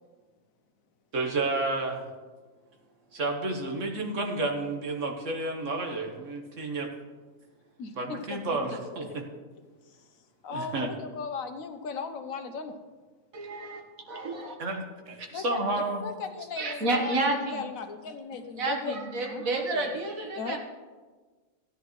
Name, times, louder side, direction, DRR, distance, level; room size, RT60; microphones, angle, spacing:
voice 1, 1.1-2.1 3.1-6.9 7.9-9.2 10.5-10.9 14.6-16.1, right 2 dB, 65° right, 2 dB, 1.7 m, -31 dB
voice 2, 7.8-9.4 10.4-12.8 15.3-19.0 19.2-19.5 19.7-20.0 20.4-20.6, left 5 dB, 90° left, 7 dB, 1.3 m, -37 dB
voice 3, 13.3-13.8 14.1-14.6 16.6-17.6 18.6-20.6, right 2 dB, 85° right, 2 dB, 1.9 m, -30 dB
15.5 x 10.0 x 3.2 m, 1.3 s
omnidirectional pair, 1.4 m